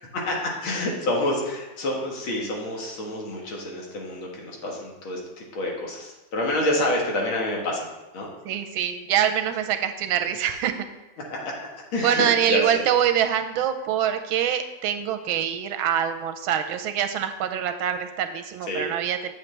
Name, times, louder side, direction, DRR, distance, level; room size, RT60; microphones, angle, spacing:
voice 1, 0.1-5.2 5.5-7.9 8.1-8.3 11.3-12.8 18.7-18.9, left 1 dB, 80° left, -1 dB, 2.3 m, -28 dB
voice 2, 8.4-10.9 12.0-19.3, right 9 dB, 90° right, 8 dB, 1.5 m, -25 dB
8.0 x 7.3 x 3.3 m, 1.0 s
omnidirectional pair, 2.2 m